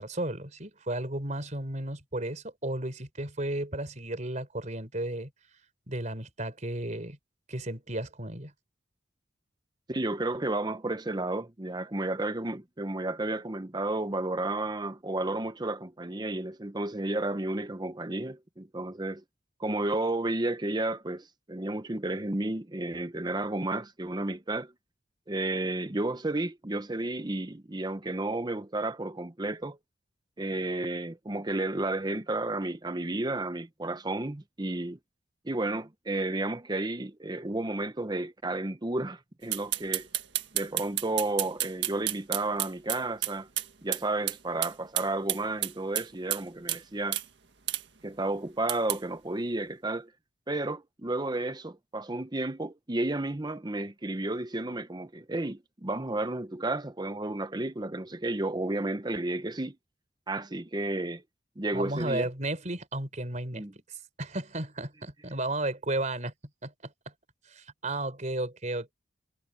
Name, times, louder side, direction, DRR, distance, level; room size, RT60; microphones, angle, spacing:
voice 1, 0.0-5.3 5.9-7.2 7.5-8.5 61.7-63.6 64.2-66.3 66.6-66.9 67.5-68.9, right 1 dB, 40° right, 4.1 m, -33 dB
voice 2, 9.9-19.2 19.6-24.7 25.3-29.8 30.4-35.0 35.4-40.1 40.5-43.5 43.8-47.2 48.0-50.1 50.5-59.8 60.3-61.2 61.6-62.3 63.5-63.7, right 2 dB, 25° right, 0.9 m, -32 dB
sound 1, 39.5-43.7 43.9-44.0 44.3-44.4 44.6-46.4 46.7-46.8 47.1-47.3 47.7-47.8 48.7-49.0, right 14 dB, 70° right, 1.8 m, -30 dB
head